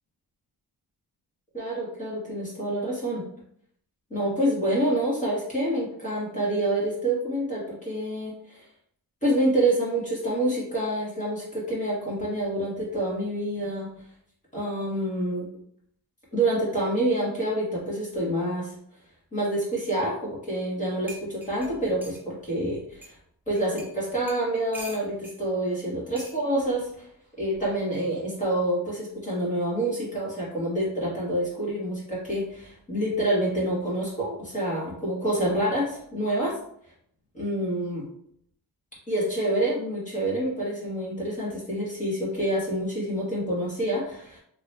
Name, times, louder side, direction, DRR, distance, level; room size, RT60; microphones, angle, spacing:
voice 1, 1.5-3.2 4.1-8.6 9.2-13.9 14.5-15.4 16.3-18.7 19.3-23.1 23.5-26.9 27.4-36.5 37.3-38.0 39.1-44.4, right 1 dB, 20° left, -6 dB, 1.4 m, -27 dB
sound 1, 20.7-20.8 21.1-22.2 23.0-23.1 23.8-23.9 24.3-25.4 26.2-26.4 27.5-27.8, right 2 dB, 5° right, 0.6 m, -43 dB
2.9 x 2.8 x 3.2 m, 0.66 s
cardioid pair, 125°, 39 cm